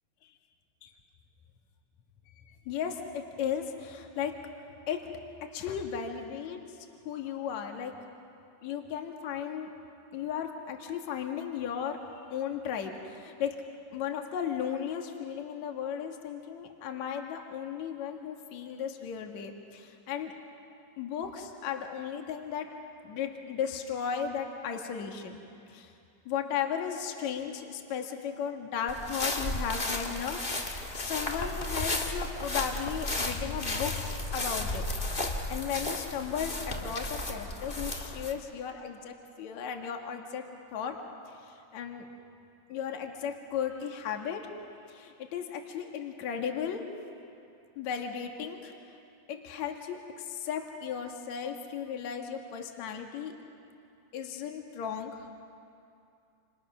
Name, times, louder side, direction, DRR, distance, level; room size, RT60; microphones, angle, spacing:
voice 1, 2.7-4.4 4.9-5.0 5.5-6.6 7.1-7.9 8.6-9.7 10.1-13.5 13.9-20.3 21.0-22.7 23.0-25.4 25.7-25.9 26.3-35.2 35.5-41.0 41.3-42.1 42.7-44.5 44.9-46.9 47.8-48.8 49.3-53.3 54.1-55.3, left 8 dB, 60° left, 3 dB, 2.9 m, -35 dB
sound 1, 28.9-38.3, left 1 dB, 25° left, 1.3 m, -34 dB
29.0 x 28.5 x 6.2 m, 2.6 s
omnidirectional pair, 3.8 m